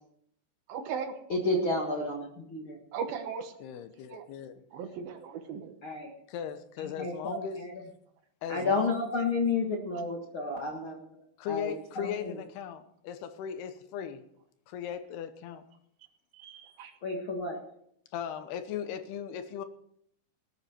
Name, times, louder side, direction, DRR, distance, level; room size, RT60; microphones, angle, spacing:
voice 1, 0.7-1.1 2.9-3.5 4.1-4.2 4.7-5.8 16.3-16.9, right 6 dB, 70° right, 7 dB, 2.8 m, -37 dB
voice 2, 1.3-2.8 5.8-6.1 6.8-7.7 8.5-11.0 11.4-12.4 17.0-17.6, left 3 dB, 50° left, 0 dB, 1.6 m, -31 dB
voice 3, 3.6-4.6 6.3-7.6 8.4-9.0 11.4-14.2 14.7-15.6 18.1-19.7, left 8 dB, 80° left, 10 dB, 2.9 m, -38 dB
19.0 x 10.0 x 4.5 m, 0.71 s
omnidirectional pair, 4.7 m